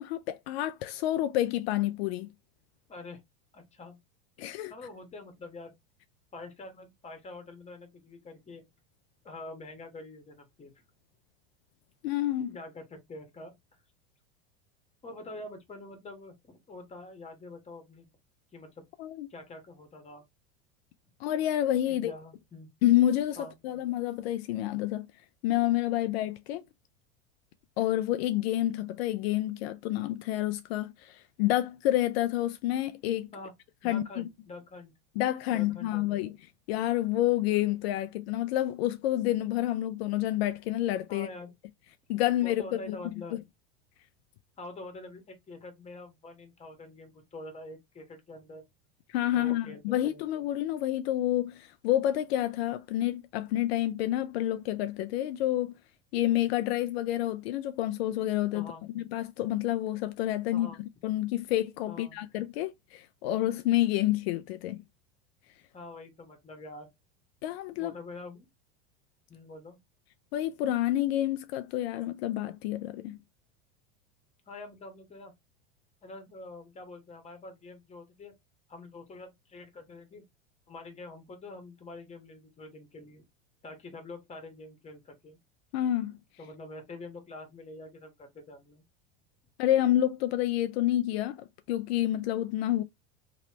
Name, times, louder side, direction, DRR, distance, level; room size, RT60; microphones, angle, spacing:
voice 1, 0.0-2.3 4.4-4.7 12.0-12.6 19.0-19.3 21.2-22.1 22.8-23.4 23.6-25.1 25.4-26.6 27.8-33.3 33.8-34.3 35.2-36.3 36.7-41.3 42.1-43.0 43.3-43.4 49.1-55.7 56.1-58.7 59.0-60.7 61.0-64.8 67.4-67.9 70.3-73.2 85.7-86.1 89.6-92.8, left 13 dB, 70° left, 0.5 m, -28 dB
voice 2, 2.9-3.2 3.5-4.0 4.7-5.7 6.3-8.7 9.2-10.7 12.5-13.6 15.0-18.1 18.5-18.8 19.3-20.2 21.9-22.7 23.4-23.5 33.3-33.5 33.8-34.9 35.5-36.2 41.1-41.5 42.4-43.4 44.6-48.6 49.3-50.2 58.5-58.9 60.5-60.8 61.9-62.2 65.7-66.9 67.7-68.5 69.3-69.8 74.5-75.3 76.0-78.3 78.7-80.3 80.7-83.2 83.6-85.4 86.4-88.8, left 2 dB, 20° left, 1.3 m, -45 dB
3.0 x 3.0 x 3.0 m
hypercardioid pair, 105°, 32 cm